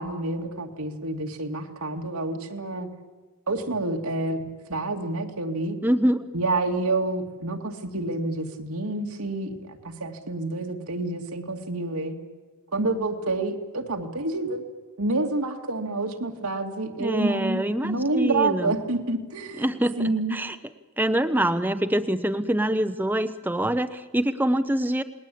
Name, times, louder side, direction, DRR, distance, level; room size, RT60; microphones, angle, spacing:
voice 1, 0.0-2.9 3.5-4.4 4.7-5.8 6.3-12.2 12.7-14.6 15.0-19.7 20.0-20.4, right 2 dB, 85° right, 3 dB, 2.5 m, -28 dB
voice 2, 5.8-6.3 17.0-18.7 19.6-20.6 21.0-25.0, right 1 dB, 10° right, 9 dB, 0.7 m, -25 dB
28.0 x 20.5 x 8.6 m, 1.3 s
head